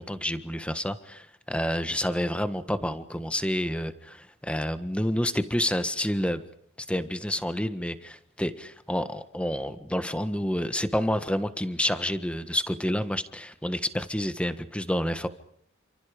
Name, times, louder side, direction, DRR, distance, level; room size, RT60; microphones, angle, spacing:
voice 1, 0.0-6.4 6.9-15.3, equal, 5° left, 10 dB, 1.4 m, -29 dB
29.5 x 27.5 x 5.2 m, 0.68 s
head